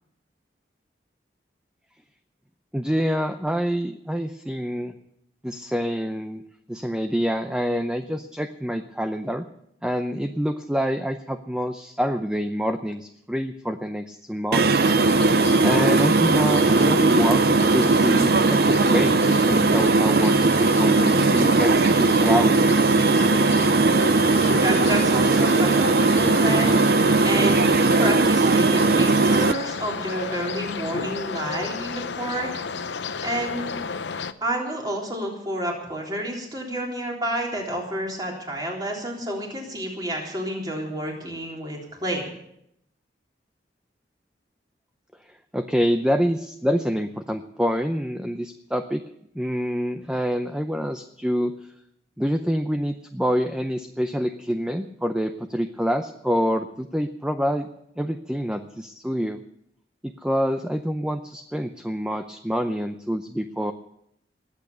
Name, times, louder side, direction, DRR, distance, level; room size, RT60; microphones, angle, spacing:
voice 1, 2.7-4.9 5.4-6.4 6.7-9.5 9.8-14.8 15.6-17.4 17.7-22.8 45.5-49.0 49.3-51.5 52.2-57.7 58.0-59.4 60.0-63.7, equal, 5° right, 7 dB, 0.6 m, -26 dB
sound 1, 14.5-29.5, right 3 dB, 60° right, 0.5 m, -19 dB
sound 2, 14.8-34.3, left 5 dB, 90° left, 0.8 m, -32 dB
voice 2, 24.6-26.7 27.2-32.5 33.2-33.8 34.4-42.3, right 1 dB, 25° right, -1 dB, 3.6 m, -29 dB
20.5 x 8.6 x 6.8 m, 0.77 s
head